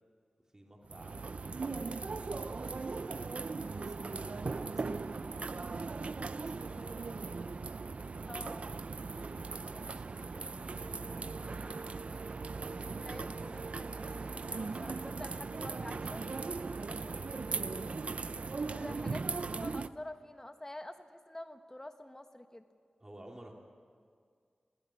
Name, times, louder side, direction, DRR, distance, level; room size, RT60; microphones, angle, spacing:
voice 1, 0.5-1.9 2.2-5.3 6.2-7.0 9.1-11.8 16.9-17.4 18.8-19.0 23.0-23.5, right 1 dB, 25° right, -1 dB, 2.7 m, -54 dB
sound 1, 0.9-19.9, right 4 dB, 60° right, 0.5 m, -39 dB
voice 2, 8.3-8.7 13.0-16.2 18.7-19.2 19.6-22.6, left 1 dB, 20° left, 7 dB, 1.4 m, -47 dB
21.0 x 15.5 x 9.9 m, 2.1 s
wide cardioid pair, 90°, 2 cm